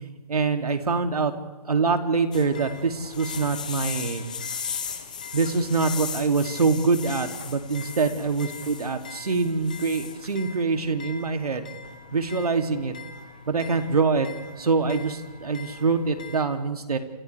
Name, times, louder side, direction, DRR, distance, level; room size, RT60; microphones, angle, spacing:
voice 1, 0.3-1.3 1.6-4.3 5.3-11.7 12.1-12.9 13.5-14.3 14.6-17.0, right 4 dB, 70° right, 5 dB, 2.7 m, -24 dB
sound 1, 2.3-16.4, left 6 dB, 10° left, 0.6 m, -38 dB
28.5 x 28.0 x 3.4 m, 1.2 s
hypercardioid pair, 175°, 20 cm